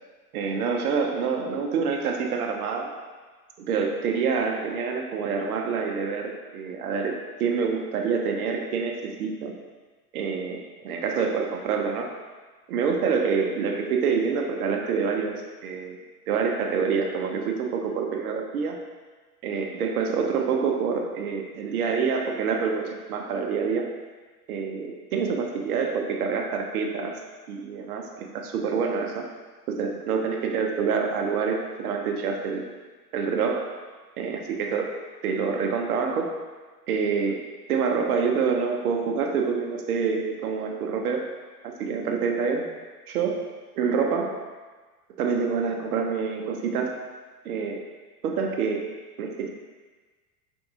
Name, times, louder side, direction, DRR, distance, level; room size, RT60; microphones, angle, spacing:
voice 1, 0.3-2.9 3.7-7.1 7.4-9.5 10.1-12.1 12.7-15.3 15.6-16.0 16.3-18.8 19.4-23.9 24.5-27.2 27.5-29.2 29.7-32.6 33.1-33.7 34.2-34.9 35.2-36.3 36.9-37.4 37.7-41.3 41.6-42.7 43.1-43.5 43.7-44.4 45.2-47.0 47.4-47.8 48.2-48.9 49.2-49.5, right 5 dB, 70° right, 2 dB, 0.7 m, -26 dB
4.6 x 3.5 x 2.6 m, 1.4 s
hypercardioid pair, 95°, 46 cm